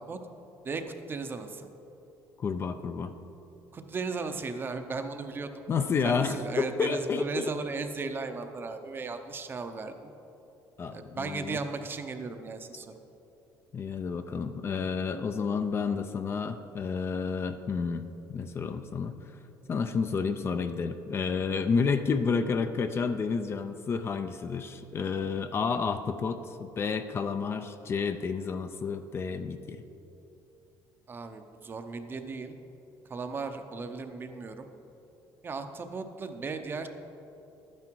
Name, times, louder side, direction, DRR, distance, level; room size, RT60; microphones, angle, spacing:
voice 1, 1.1-1.7 3.7-5.5 6.0-10.1 10.9-13.0 31.1-32.6 33.1-34.7 35.4-36.9, right 4 dB, 25° right, 7 dB, 0.7 m, -36 dB
voice 2, 2.4-3.1 5.7-7.5 10.8-11.6 13.7-19.3 19.7-29.8, left 5 dB, 30° left, 9 dB, 0.4 m, -30 dB
11.5 x 9.6 x 4.6 m, 2.9 s
cardioid pair, 145°, 8 cm